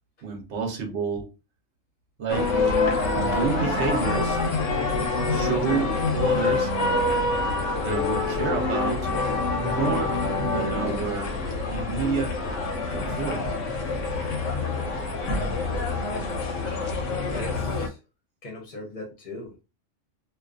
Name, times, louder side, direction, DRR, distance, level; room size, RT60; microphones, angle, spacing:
voice 1, 0.2-1.3 2.2-2.6 3.1-4.4 5.3-6.7 7.8-9.1 9.6-10.1 10.4-11.3 11.7-12.4 12.9-13.5, right 5 dB, 65° right, 0.9 m, -29 dB
sound 1, 2.3-17.9, left 3 dB, 80° left, 1.0 m, -26 dB
voice 2, 17.3-18.0 18.4-19.6, left 1 dB, 45° left, 0.7 m, -39 dB
2.5 x 2.3 x 2.3 m
omnidirectional pair, 1.3 m